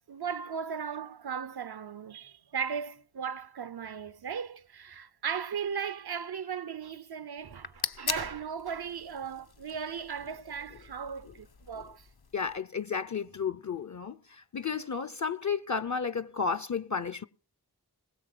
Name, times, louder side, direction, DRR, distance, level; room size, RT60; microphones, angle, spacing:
voice 1, 0.1-12.1, right 7 dB, 75° right, 0.7 m, -37 dB
sound 1, 7.4-12.6, left 6 dB, 70° left, 0.9 m, -41 dB
voice 2, 12.3-17.2, left 6 dB, 50° left, 0.6 m, -32 dB
20.0 x 7.2 x 6.0 m
wide cardioid pair, 40°, 38 cm